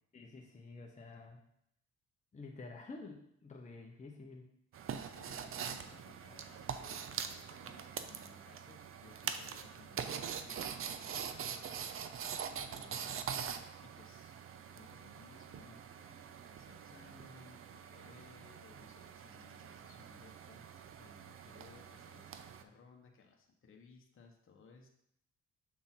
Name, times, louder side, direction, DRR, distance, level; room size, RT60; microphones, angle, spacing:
voice 1, 0.1-1.4 2.3-4.5, left 3 dB, 25° left, 1 dB, 0.8 m, -50 dB
sound 1, 4.7-22.6, right 7 dB, 45° right, 0.5 m, -44 dB
voice 2, 5.0-12.0 12.6-13.1 13.8-24.9, left 4 dB, 45° left, 1 dB, 1.1 m, -61 dB
7.0 x 3.7 x 4.4 m, 0.73 s
cardioid pair, 90°, 30 cm